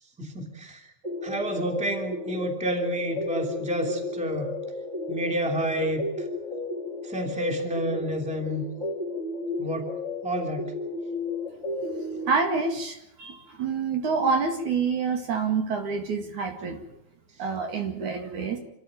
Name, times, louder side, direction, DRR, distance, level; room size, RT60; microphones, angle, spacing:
voice 1, 0.2-0.8 1.2-4.5 5.1-6.1 7.0-8.6 9.6-9.9 10.2-10.7, equal, ahead, 4 dB, 2.4 m, -29 dB
sound 1, 1.0-12.3, left 2 dB, 20° right, 4.7 m, -33 dB
voice 2, 12.3-16.8 17.4-18.6, right 5 dB, 60° right, 5 dB, 3.4 m, -27 dB
27.5 x 13.5 x 9.0 m, 0.77 s
omnidirectional pair, 4.2 m